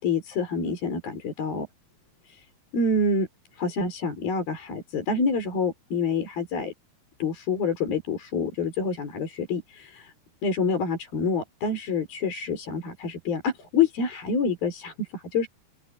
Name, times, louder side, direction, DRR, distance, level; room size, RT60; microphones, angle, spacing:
voice 1, 0.0-1.7 2.7-3.3 3.6-6.7 7.2-10.1 10.4-15.5, left 4 dB, 65° left, 6.9 m, -27 dB
open air
omnidirectional pair, 4.5 m